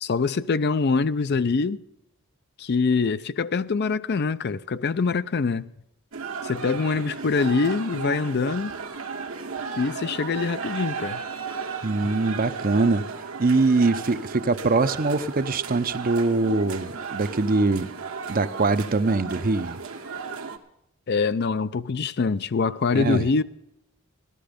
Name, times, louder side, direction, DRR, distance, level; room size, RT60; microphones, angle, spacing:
voice 1, 0.0-1.8 2.6-5.7 6.4-8.7 9.8-11.2 21.1-23.4, left 4 dB, 50° left, 0.5 m, -24 dB
sound 1, 6.1-20.6, right 5 dB, 80° right, 1.5 m, -35 dB
voice 2, 11.8-17.9 18.3-19.8 22.9-23.2, right 3 dB, 45° right, 0.6 m, -23 dB
15.5 x 12.5 x 5.1 m
head